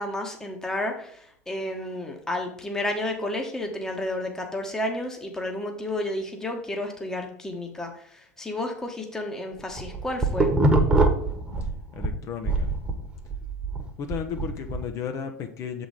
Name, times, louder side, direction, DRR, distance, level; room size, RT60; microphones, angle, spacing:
voice 1, 0.0-10.5, left 1 dB, 5° left, 2 dB, 1.1 m, -31 dB
sound 1, 9.6-12.1 12.5-14.8, right 2 dB, 10° right, 1.2 m, -23 dB
voice 2, 12.0-12.7 14.0-15.9, left 7 dB, 35° left, 6 dB, 0.7 m, -33 dB
7.0 x 4.0 x 4.8 m, 0.67 s
figure-of-eight pair, 80°, 8 cm